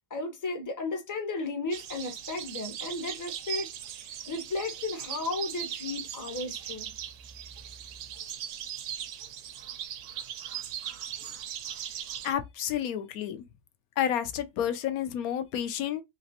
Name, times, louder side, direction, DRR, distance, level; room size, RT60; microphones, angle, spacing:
voice 1, 0.1-3.7 4.0-6.9, left 3 dB, 20° left, 0.5 m, -34 dB
sound 1, 1.7-12.3, right 10 dB, 65° right, 0.8 m, -39 dB
voice 2, 12.2-13.4 14.0-16.0, left 10 dB, 90° left, 1.1 m, -30 dB
3.3 x 3.0 x 2.8 m
omnidirectional pair, 1.5 m